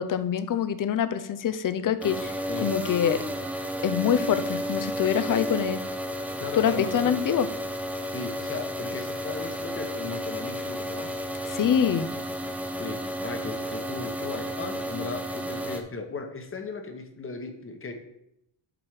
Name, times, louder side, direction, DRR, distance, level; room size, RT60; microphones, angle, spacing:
voice 1, 0.0-3.3 3.8-5.8 6.5-7.5 11.4-12.1, left 8 dB, 45° left, 12 dB, 0.6 m, -25 dB
sound 1, 2.0-15.8, equal, 5° right, 0.6 m, -32 dB
voice 2, 2.2-2.7 6.4-7.2 8.1-11.1 12.8-17.9, left 3 dB, 25° left, 5 dB, 1.0 m, -37 dB
7.8 x 4.6 x 4.8 m, 0.79 s
cardioid pair, 130°, 47 cm